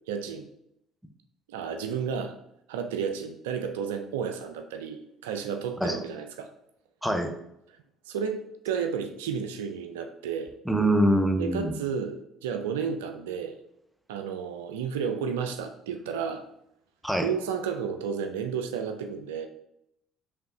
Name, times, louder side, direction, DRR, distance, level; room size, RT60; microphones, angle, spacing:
voice 1, 0.1-0.5 1.5-2.3 2.7-6.5 8.1-10.5 11.4-13.6 14.1-16.4 17.2-19.5, right 7 dB, 85° right, 6 dB, 0.4 m, -32 dB
voice 2, 7.0-7.3 10.6-11.7 17.0-17.3, right 1 dB, 5° right, 4 dB, 0.8 m, -24 dB
4.9 x 3.3 x 2.8 m, 0.77 s
hypercardioid pair, 60°, 0 cm